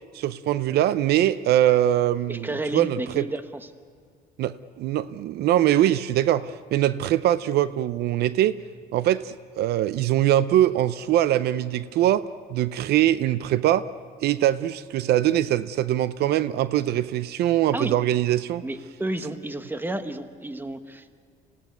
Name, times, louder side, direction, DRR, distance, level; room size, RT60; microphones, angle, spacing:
voice 1, 0.1-3.2 4.4-8.5 8.9-12.2 12.5-13.9 14.2-18.6, right 12 dB, 70° right, 15 dB, 0.6 m, -22 dB
voice 2, 2.3-3.7 17.7-18.0 18.6-21.1, right 1 dB, 10° right, 9 dB, 1.3 m, -31 dB
25.5 x 16.5 x 9.3 m, 2.1 s
cardioid pair, 110°, 17 cm